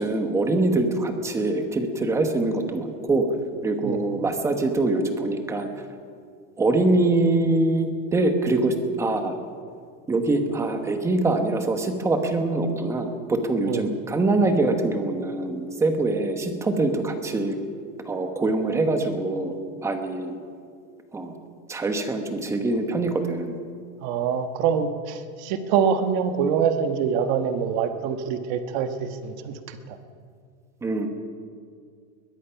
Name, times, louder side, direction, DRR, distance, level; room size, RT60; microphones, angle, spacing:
voice 1, 0.0-3.3 3.6-5.7 6.6-9.3 10.1-17.6 18.0-20.3 21.1-21.3 21.7-23.5 30.8-31.1, right 2 dB, 10° right, 6 dB, 1.2 m, -24 dB
voice 2, 24.0-29.8, right 7 dB, 40° right, 8 dB, 1.4 m, -25 dB
21.5 x 20.5 x 5.8 m, 2.2 s
supercardioid pair, 180°, 35 cm